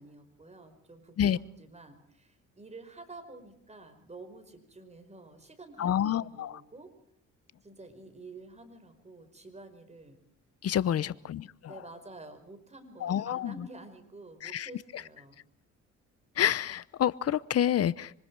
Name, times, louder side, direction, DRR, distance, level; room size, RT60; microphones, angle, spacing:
voice 1, 0.0-6.9 7.6-10.2 10.9-11.2 11.7-15.4, right 2 dB, 20° right, 8 dB, 5.1 m, -50 dB
voice 2, 5.8-6.6 10.6-11.7 13.0-13.7 14.4-15.0 16.4-18.1, left 10 dB, 55° left, 19 dB, 0.9 m, -28 dB
26.5 x 25.0 x 4.7 m, 0.63 s
cardioid pair, 90°, 30 cm